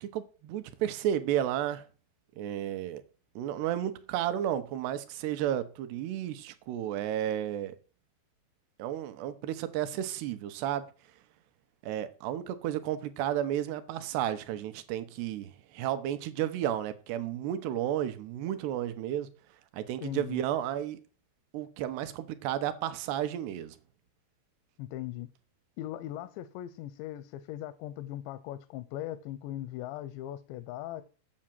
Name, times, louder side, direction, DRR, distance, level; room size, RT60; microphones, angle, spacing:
voice 1, 0.0-1.8 2.4-3.0 3.4-7.8 8.8-10.9 11.8-19.3 19.7-21.0 21.5-23.8, right 11 dB, 80° right, 2.9 m, -32 dB
voice 2, 20.0-20.4 24.8-25.3 25.8-31.0, left 13 dB, 85° left, 2.9 m, -39 dB
8.7 x 6.5 x 7.5 m
omnidirectional pair, 5.0 m